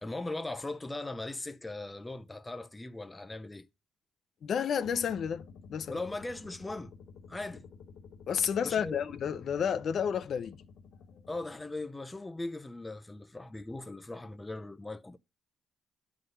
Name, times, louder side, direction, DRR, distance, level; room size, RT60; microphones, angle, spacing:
voice 1, 0.0-3.7 5.9-6.9 7.3-7.7 8.6-9.1 11.3-15.2, left 2 dB, 15° left, 0.6 m, -39 dB
voice 2, 4.4-5.4 5.7-6.0 8.3-10.6, left 7 dB, 60° left, 0.7 m, -31 dB
sound 1, 4.8-11.6, left 5 dB, 75° left, 1.2 m, -52 dB
11.5 x 3.9 x 5.4 m
cardioid pair, 90°, 0 cm